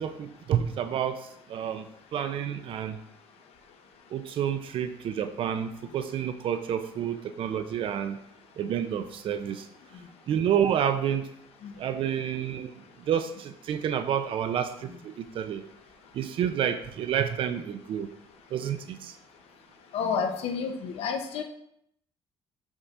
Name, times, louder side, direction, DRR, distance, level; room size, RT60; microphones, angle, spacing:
voice 1, 0.0-1.9 2.1-3.0 4.1-8.2 8.6-9.7 10.3-11.3 11.8-12.7 13.1-15.6 16.1-18.1 18.5-19.1, right 9 dB, 60° right, 9 dB, 0.7 m, -29 dB
voice 2, 19.9-21.4, left 6 dB, 70° left, 5 dB, 1.1 m, -30 dB
6.4 x 4.1 x 5.9 m, 0.73 s
cardioid pair, 115°, 10 cm